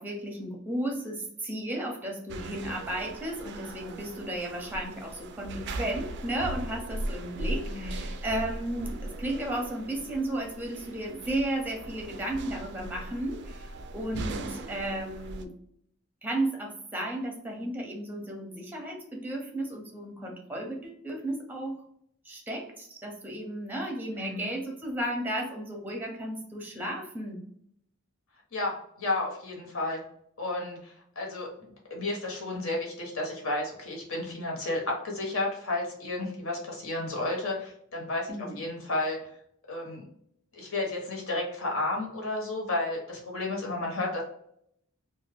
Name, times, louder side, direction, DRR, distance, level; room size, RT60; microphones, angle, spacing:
voice 1, 0.0-15.5 16.2-21.8 22.2-27.4 38.3-38.7, right 1 dB, 10° right, 1 dB, 0.6 m, -34 dB
sound 1, 2.3-15.4, right 2 dB, 55° right, 0.3 m, -39 dB
voice 2, 7.7-8.0 24.2-24.5 28.5-30.0 30.4-39.3 39.7-40.0 40.5-44.2, left 2 dB, 70° left, -1 dB, 1.0 m, -32 dB
2.6 x 2.2 x 3.4 m, 0.70 s
head